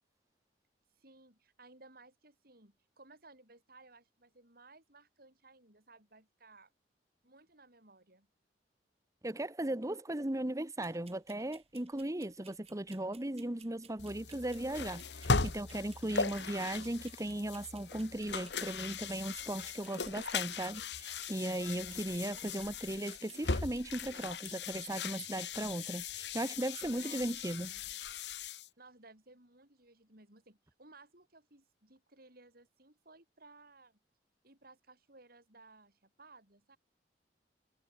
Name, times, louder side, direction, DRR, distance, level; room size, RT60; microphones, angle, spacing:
voice 1, 1.0-6.7 7.2-8.3 22.2-22.8 26.9-27.8 28.8-34.0 34.4-36.8, right 3 dB, 55° right, 7.5 m, -59 dB
voice 2, 9.2-27.7, right 1 dB, 20° right, 1.1 m, -37 dB
sound 1, 10.8-25.9, right 7 dB, 35° right, 5.9 m, -62 dB
sound 2, 14.0-28.7, left 4 dB, 70° left, 1.5 m, -39 dB
head